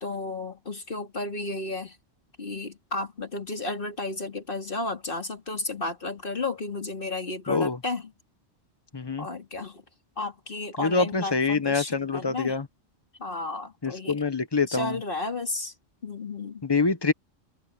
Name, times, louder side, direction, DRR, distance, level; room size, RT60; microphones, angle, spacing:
voice 1, 0.0-2.0 2.4-8.1 9.2-9.8 10.2-12.6 13.2-14.2 14.7-15.7 16.0-16.6, left 2 dB, 45° left, 3.0 m, -33 dB
voice 2, 7.5-7.8 8.9-9.3 10.8-12.7 13.8-15.0 16.6-17.1, left 4 dB, 20° left, 0.9 m, -25 dB
omnidirectional pair, 1.3 m